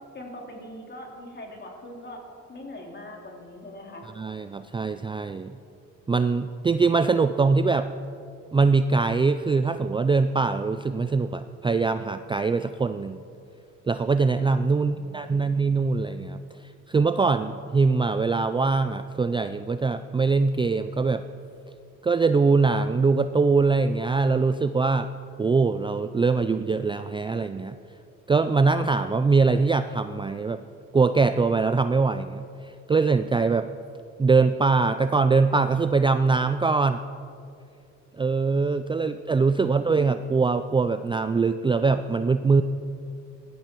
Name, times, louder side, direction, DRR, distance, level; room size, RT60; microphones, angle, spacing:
voice 1, 0.1-2.2 2.5-4.1, left 1 dB, 35° left, 0 dB, 3.3 m, -42 dB
voice 2, 4.2-5.5 6.1-7.9 8.5-13.2 13.9-21.2 22.0-25.1 25.4-27.8 28.3-30.6 30.9-33.7 34.2-37.0 38.1-42.6, right 4 dB, 15° right, 10 dB, 0.4 m, -23 dB
17.5 x 13.5 x 4.6 m, 2.5 s
cardioid pair, 90°, 30 cm